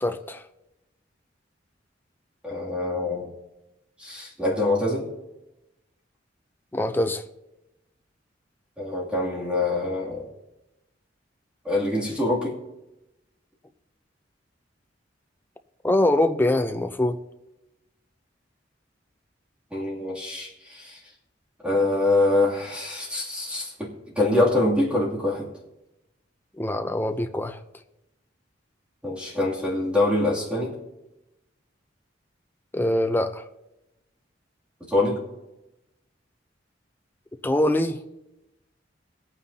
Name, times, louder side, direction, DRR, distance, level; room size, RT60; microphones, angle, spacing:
voice 1, 0.0-0.4 6.7-7.2 15.8-17.2 26.6-27.6 32.7-33.4 37.4-38.0, left 1 dB, 10° left, 0.6 m, -23 dB
voice 2, 2.4-3.3 4.0-5.0 8.8-10.2 11.6-12.6 19.7-21.0 21.6-25.5 29.0-30.7 34.8-35.2, left 2 dB, 5° right, 2.6 m, -25 dB
21.5 x 9.1 x 2.8 m
head